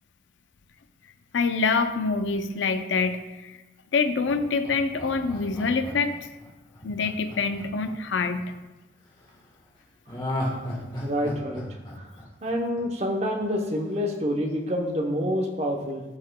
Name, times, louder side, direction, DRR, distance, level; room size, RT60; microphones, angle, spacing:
voice 1, 1.3-3.6 3.9-6.3 6.8-8.6, left 4 dB, 85° left, 9 dB, 0.5 m, -26 dB
Laughter, 4.3-8.5 10.1-13.1 13.4-13.5, left 1 dB, 25° left, 1.6 m, -35 dB
voice 2, 11.0-11.6 12.0-12.1 12.4-16.0, equal, 35° right, 2 dB, 0.8 m, -27 dB
12.5 x 4.8 x 2.2 m, 1.1 s
head